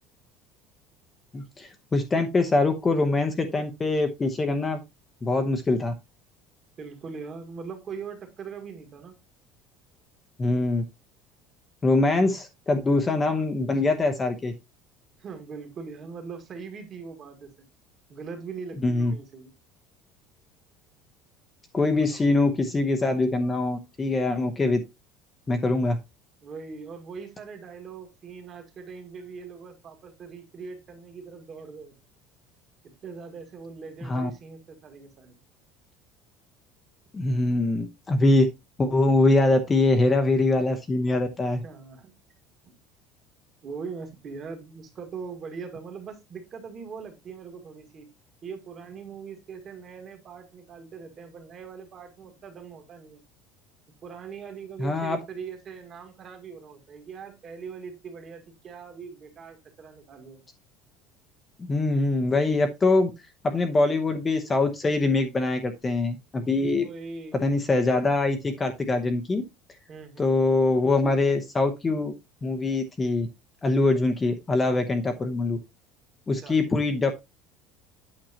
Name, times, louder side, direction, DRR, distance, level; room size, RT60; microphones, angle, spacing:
voice 1, 1.3-4.8 5.2-5.9 10.4-10.8 11.8-14.5 18.8-19.1 21.7-24.8 25.5-26.0 34.0-34.3 37.1-38.5 38.8-41.6 54.8-55.2 61.7-63.1 63.4-66.8 67.4-69.4 70.2-72.1 72.4-73.3 73.6-75.6 76.3-77.1, left 2 dB, 15° left, 6 dB, 0.8 m, -23 dB
voice 2, 6.8-9.2 12.0-12.4 13.7-13.8 15.2-17.7 18.1-19.5 21.9-22.0 26.4-31.9 32.8-35.3 41.6-42.1 43.6-48.1 48.4-53.2 54.0-60.4 66.7-67.4 69.9-70.5 76.3-76.6, right 5 dB, 30° right, 6 dB, 1.7 m, -41 dB
8.9 x 6.4 x 2.8 m, 0.22 s
cardioid pair, 175°, 0 cm